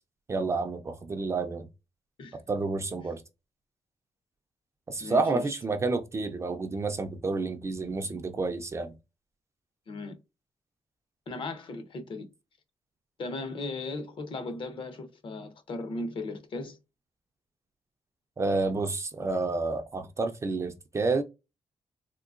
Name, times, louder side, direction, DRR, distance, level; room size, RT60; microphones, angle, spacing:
voice 1, 0.3-1.7 2.3-3.2 4.9-8.9 18.4-21.2, right 3 dB, 25° right, 0.3 m, -29 dB
voice 2, 5.0-5.5 9.9-10.2 11.3-12.3 13.2-16.8, left 2 dB, 50° left, 0.6 m, -37 dB
3.7 x 2.5 x 2.4 m
wide cardioid pair, 175°, 11 cm